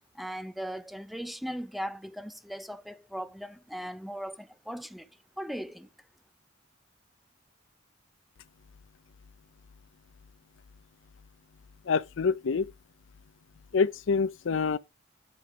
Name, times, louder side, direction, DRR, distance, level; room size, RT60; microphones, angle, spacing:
voice 1, 0.1-5.1 5.4-5.9, equal, ahead, 0.4 m, -38 dB
voice 2, 11.9-12.7 13.7-14.8, left 5 dB, 70° left, 0.5 m, -26 dB
9.5 x 3.4 x 4.8 m
head